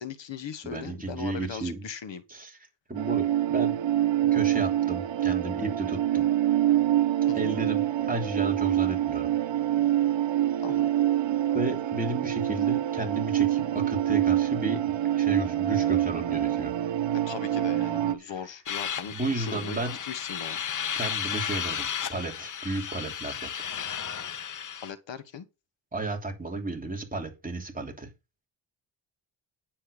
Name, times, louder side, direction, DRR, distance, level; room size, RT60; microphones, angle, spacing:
voice 1, 0.0-2.2 7.3-7.5 10.6-10.9 17.1-20.6 24.8-25.5, left 7 dB, 80° left, 1.3 m, -39 dB
voice 2, 0.6-1.8 2.3-2.6 2.9-3.8 4.3-6.3 7.3-9.3 11.5-16.7 18.2-18.3 19.1-20.0 20.9-23.5 25.9-28.1, right 2 dB, 20° right, 3.1 m, -33 dB
sound 1, 3.0-18.1, right 12 dB, 80° right, 0.9 m, -26 dB
sound 2, 18.7-24.9, left 8 dB, 45° left, 0.7 m, -34 dB
10.0 x 7.7 x 5.1 m
wide cardioid pair, 115°, 44 cm